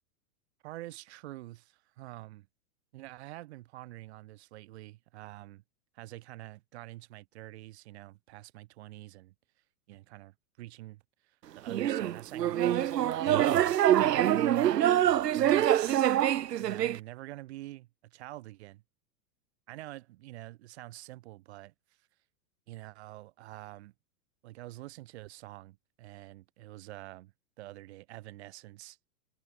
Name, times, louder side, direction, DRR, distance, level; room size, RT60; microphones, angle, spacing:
voice 1, 0.6-2.5 2.9-5.6 5.9-9.3 9.9-13.2 13.9-14.7 15.3-16.0 16.6-18.8 19.7-21.7 22.7-23.9 24.4-27.3 27.6-29.0, right 17 dB, 40° right, 6.5 m, -46 dB
sound 1, 11.7-17.0, right 11 dB, 80° right, 2.5 m, -25 dB
supercardioid pair, 175°, 48 cm